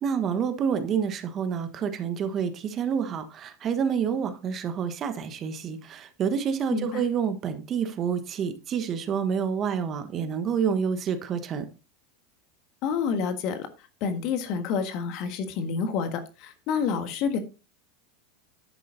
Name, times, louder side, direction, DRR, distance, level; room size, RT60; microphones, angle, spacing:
voice 1, 0.0-11.7, right 7 dB, 40° right, 1.3 m, -28 dB
voice 2, 6.7-7.0 12.8-13.7 14.0-17.4, left 6 dB, 55° left, 1.6 m, -28 dB
10.5 x 8.4 x 2.7 m
hypercardioid pair, 90°, 0 cm